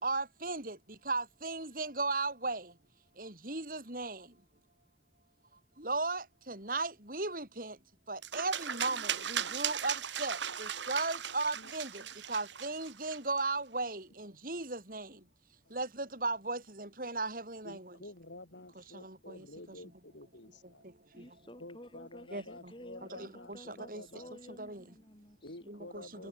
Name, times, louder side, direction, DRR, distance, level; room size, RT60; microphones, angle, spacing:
voice 1, 0.0-0.8 1.1-2.7 3.2-4.2 5.8-7.7 8.1-11.9 12.3-15.1 15.7-17.9 19.0-19.4 22.3-22.4 23.2-24.0 24.6-24.8 25.7-26.3, right 3 dB, 50° right, 5.9 m, -36 dB
sound 1, 8.2-13.4, right 9 dB, 90° right, 3.0 m, -37 dB
voice 2, 17.6-20.8 21.6-24.3 25.4-26.3, left 2 dB, 90° left, 5.0 m, -50 dB
voice 3, 21.1-25.7, equal, 30° left, 7.2 m, -52 dB
head